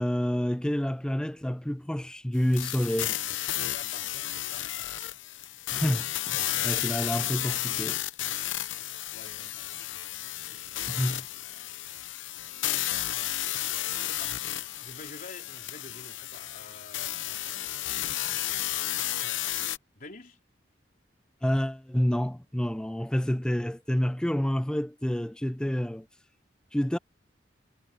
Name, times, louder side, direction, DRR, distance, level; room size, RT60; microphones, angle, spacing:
voice 1, 0.0-3.2 5.7-8.0 10.9-11.3 21.4-26.1 26.7-27.0, equal, 5° left, 0.3 m, -28 dB
sound 1, 2.5-19.8, left 13 dB, 85° left, 0.8 m, -32 dB
voice 2, 3.7-5.1 9.1-11.7 14.0-14.4 14.8-18.4 19.9-20.4, left 3 dB, 45° left, 4.0 m, -50 dB
head